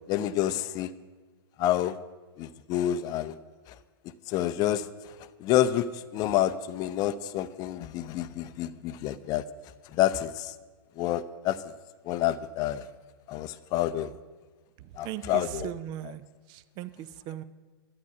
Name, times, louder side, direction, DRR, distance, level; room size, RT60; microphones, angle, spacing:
voice 1, 0.1-0.9 1.6-2.0 2.4-3.3 4.3-5.1 5.4-9.4 9.9-10.5 11.0-11.6 12.1-12.8 13.3-14.1 15.0-15.7, left 12 dB, 30° left, 13 dB, 0.6 m, -28 dB
voice 2, 14.8-16.2 16.5-17.4, right 12 dB, 35° right, 15 dB, 0.6 m, -38 dB
11.5 x 9.7 x 6.0 m, 1.3 s
figure-of-eight pair, 110°, 13 cm